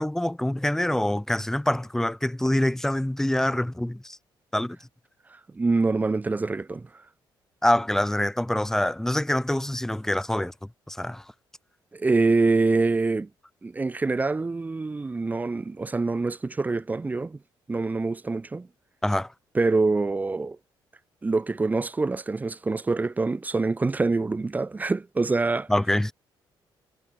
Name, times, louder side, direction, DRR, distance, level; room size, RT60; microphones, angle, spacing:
voice 1, 0.0-4.2 4.5-4.8 7.6-10.5 10.9-11.2 19.0-19.3 25.7-26.1, left 1 dB, 5° left, 5.5 m, -25 dB
voice 2, 5.3-6.9 11.9-13.3 13.6-17.4 17.7-18.7 19.5-20.6 21.2-25.7, right 3 dB, 20° right, 2.6 m, -25 dB
cardioid pair, 130°, 9 cm